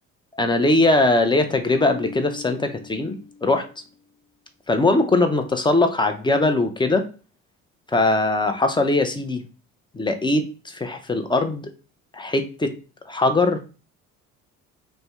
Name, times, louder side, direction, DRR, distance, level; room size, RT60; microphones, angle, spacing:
voice 1, 0.4-3.1 3.4-3.6 4.7-7.1 7.9-9.4 9.9-11.7 12.1-12.7 13.1-13.6, left 2 dB, 10° left, 6 dB, 0.5 m, -20 dB
Marimba xylophone, 1.8-3.8, left 5 dB, 70° left, 0.9 m, -39 dB
2.6 x 2.1 x 3.4 m, 0.34 s
hypercardioid pair, 60°, 40 cm